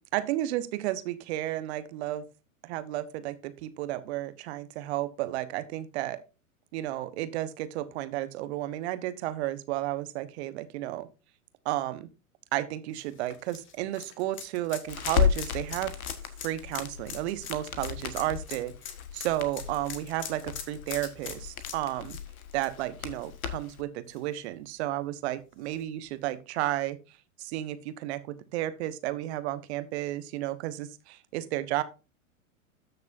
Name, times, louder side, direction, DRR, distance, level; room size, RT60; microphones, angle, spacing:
voice 1, 0.1-2.2 2.6-6.2 6.7-11.1 11.6-12.1 12.5-15.9 16.4-18.7 19.1-22.2 22.5-27.0 27.4-31.8, right 15 dB, 50° right, 13 dB, 1.1 m, -32 dB
sound 1, 12.9-23.7 24.1-24.2 25.6-25.7, left 8 dB, 25° left, 1.5 m, -42 dB
Crackle, 14.9-23.8, left 8 dB, 75° left, 1.4 m, -34 dB
13.5 x 6.6 x 2.6 m, 0.30 s
hypercardioid pair, 105°, 43 cm